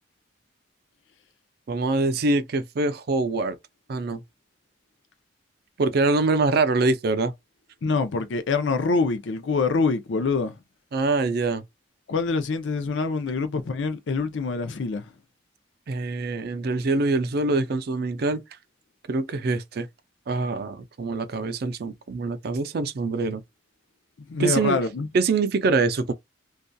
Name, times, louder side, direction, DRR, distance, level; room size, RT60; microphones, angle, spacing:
voice 1, 1.7-3.6 3.9-4.2 5.8-7.3 10.9-11.6 15.9-18.4 19.1-19.9 20.3-23.4 24.4-24.8 25.1-26.1, right 3 dB, 55° right, 0.4 m, -24 dB
voice 2, 7.8-10.5 12.1-15.1 24.3-25.1, left 4 dB, 80° left, 0.5 m, -25 dB
2.6 x 2.3 x 2.2 m
head